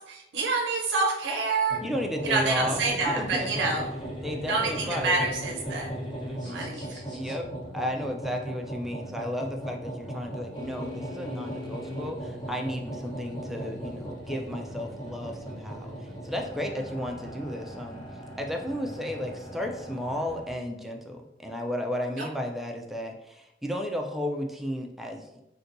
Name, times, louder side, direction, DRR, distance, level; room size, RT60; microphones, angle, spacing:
voice 1, 0.1-1.8 2.2-3.8 4.5-5.9 6.4-7.0, right 3 dB, 80° right, 0 dB, 0.5 m, -27 dB
sound 1, 1.7-20.5, right 1 dB, 25° left, 1.1 m, -38 dB
voice 2, 1.8-3.7 4.2-5.2 6.2-6.7 7.1-7.5 7.7-18.0 18.4-25.4, left 1 dB, ahead, 2 dB, 0.3 m, -33 dB
4.0 x 2.2 x 2.5 m, 0.89 s
head